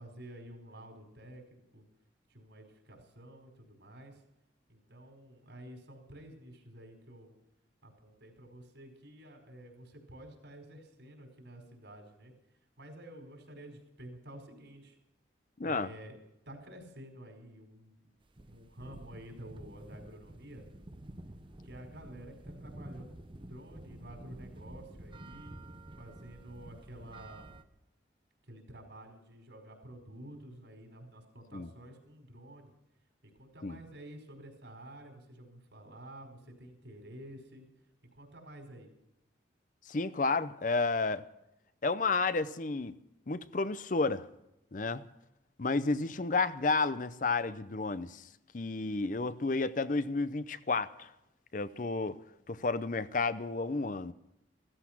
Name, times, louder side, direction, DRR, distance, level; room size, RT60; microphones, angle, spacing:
voice 1, 0.0-1.8 2.3-4.2 4.7-7.3 7.8-12.3 12.8-15.0 15.6-16.1 16.4-18.1 18.5-20.6 21.6-25.5 26.0-27.5 28.4-32.7 33.2-37.6 38.1-38.9, right 1 dB, 70° right, 4.9 m, -50 dB
sound 1, 18.2-27.6, right 1 dB, 25° right, 0.8 m, -50 dB
voice 2, 39.9-41.2 41.8-42.9 43.3-44.3 44.7-45.0 45.6-48.2 48.5-51.1 51.5-52.2 52.5-54.1, left 3 dB, 45° left, 0.6 m, -31 dB
16.0 x 14.0 x 6.0 m
head